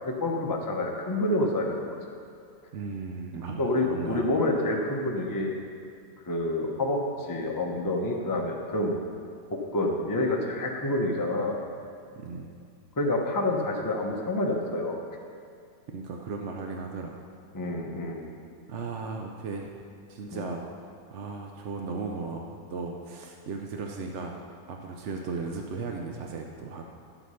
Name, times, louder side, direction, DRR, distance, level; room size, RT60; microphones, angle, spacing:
voice 1, 0.0-2.0 3.6-5.6 6.3-9.0 9.5-11.5 13.0-15.0 17.5-18.2 20.3-20.5, left 1 dB, 20° left, 0 dB, 0.6 m, -28 dB
voice 2, 2.7-4.3 12.2-12.5 15.9-17.2 18.7-19.7 20.1-20.6 21.1-24.4 24.7-26.9, right 4 dB, 60° right, 2 dB, 0.7 m, -36 dB
11.0 x 8.1 x 5.6 m, 2.3 s
omnidirectional pair, 1.9 m